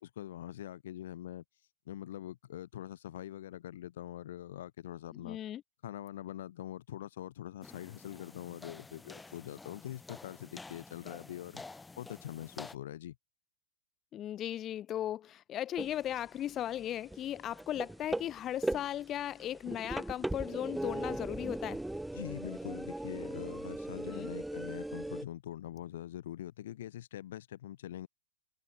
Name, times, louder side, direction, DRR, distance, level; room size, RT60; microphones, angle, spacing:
voice 1, 0.0-1.4 1.9-5.4 5.8-11.6 12.0-13.2 22.1-28.1, left 12 dB, 75° left, 4.7 m, -44 dB
voice 2, 5.1-5.6 14.1-21.8 24.1-24.3, left 11 dB, 35° left, 3.6 m, -37 dB
sound 1, 7.6-12.7, left 3 dB, 10° left, 3.0 m, -50 dB
sound 2, 15.8-16.2 16.5-25.2, right 1 dB, 5° right, 5.5 m, -38 dB
hypercardioid pair, 110°, 0 cm